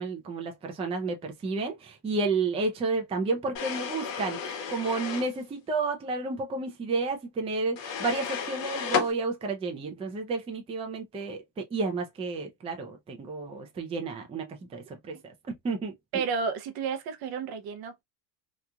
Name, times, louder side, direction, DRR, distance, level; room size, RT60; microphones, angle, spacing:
voice 1, 0.0-15.9, right 3 dB, 15° right, 0.4 m, -31 dB
sound 1, 3.5-5.3 7.8-9.1, left 7 dB, 75° left, 1.2 m, -32 dB
voice 2, 16.1-18.0, right 5 dB, 50° right, 0.7 m, -31 dB
3.0 x 2.4 x 2.2 m
supercardioid pair, 110°, 47 cm